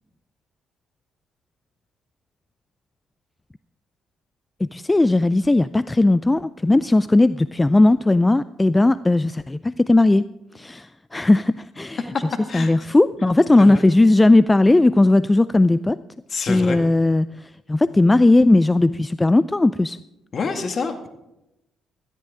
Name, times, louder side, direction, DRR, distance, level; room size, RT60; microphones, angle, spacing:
voice 1, 4.6-10.3 10.5-12.1 12.5-16.0 16.5-20.0, left 2 dB, 20° left, 16 dB, 0.4 m, -17 dB
voice 2, 16.3-16.8 20.3-21.1, left 4 dB, 50° left, 7 dB, 2.0 m, -27 dB
16.5 x 13.5 x 3.8 m, 0.89 s
hypercardioid pair, 50°, 0 cm